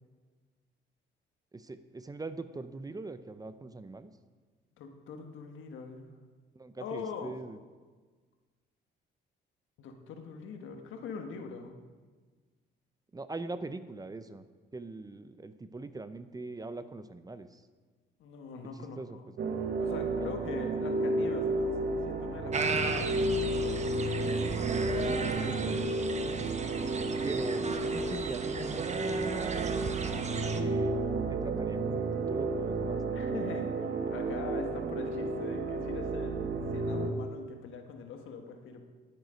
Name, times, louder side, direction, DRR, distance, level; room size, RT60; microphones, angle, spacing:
voice 1, 1.5-4.1 6.6-7.6 13.1-14.4 14.7-17.6 19.0-19.2 20.2-20.3 25.0-25.8 27.2-31.0 31.3-33.2, right 3 dB, 20° right, 12 dB, 0.6 m, -42 dB
voice 2, 4.8-6.1 6.8-7.4 9.8-11.8 18.2-19.2 19.8-23.3 33.1-38.9, left 5 dB, 80° left, 4 dB, 1.3 m, -43 dB
sound 1, 19.4-37.1, right 2 dB, 55° right, 1.2 m, -32 dB
sound 2, 22.5-30.6, right 4 dB, 35° right, 0.9 m, -36 dB
11.0 x 9.2 x 5.1 m, 1.4 s
cardioid pair, 90°, 20 cm